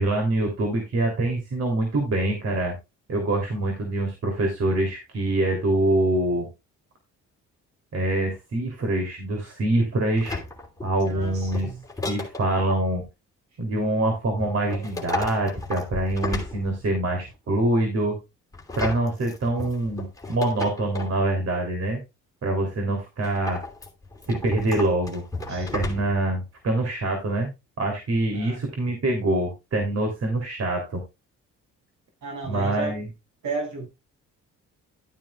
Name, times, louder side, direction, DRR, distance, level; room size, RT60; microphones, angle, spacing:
voice 1, 0.0-2.7 3.1-6.5 7.9-10.4 10.8-11.7 12.0-13.0 13.6-18.2 18.8-22.0 22.4-23.6 24.3-25.2 25.5-27.5 27.8-31.0 32.4-33.1, right 2 dB, 55° right, 3.2 m, -25 dB
sound 1, 10.2-12.8 14.4-17.1 18.5-21.2 23.2-26.3 26.7-26.8, left 2 dB, 10° left, 3.0 m, -34 dB
voice 2, 11.0-11.8 25.5-25.7 28.3-28.7 32.2-33.0 33.4-33.9, right 4 dB, 70° right, 6.5 m, -33 dB
12.0 x 9.6 x 2.4 m
cardioid pair, 90°, 30 cm